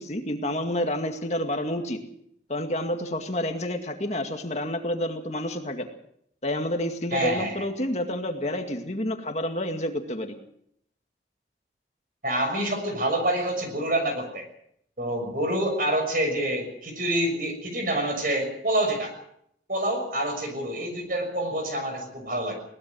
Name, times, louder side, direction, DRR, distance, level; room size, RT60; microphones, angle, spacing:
voice 1, 0.0-2.0 2.5-5.9 6.4-10.4, left 1 dB, 40° left, 4 dB, 2.1 m, -29 dB
voice 2, 7.1-7.6 12.2-14.5 15.0-19.1 19.7-22.6, right 1 dB, 50° right, 6 dB, 6.3 m, -27 dB
22.0 x 19.5 x 6.2 m, 0.70 s
head